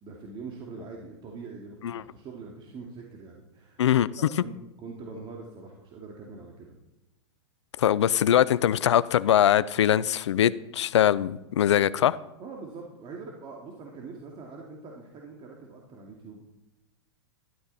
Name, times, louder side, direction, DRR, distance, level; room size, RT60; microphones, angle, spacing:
voice 1, 0.0-3.9 4.2-6.8 12.4-16.4, right 4 dB, 35° right, 0 dB, 2.4 m, -43 dB
voice 2, 7.8-12.2, left 10 dB, 80° left, 17 dB, 0.5 m, -22 dB
12.5 x 12.0 x 4.2 m, 0.96 s
hypercardioid pair, 110°, 15 cm